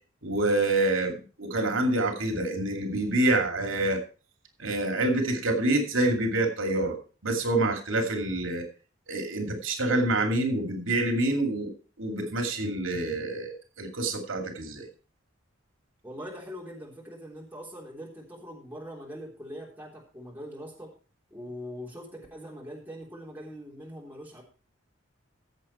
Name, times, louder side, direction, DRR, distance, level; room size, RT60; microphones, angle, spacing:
voice 1, 0.2-4.0 4.6-7.0 7.2-8.7 9.1-11.7 12.0-14.9, right 2 dB, 80° right, 5 dB, 2.6 m, -27 dB
voice 2, 16.0-20.9 21.3-24.4, equal, 10° right, -3 dB, 3.5 m, -42 dB
15.5 x 7.4 x 4.4 m, 0.35 s
head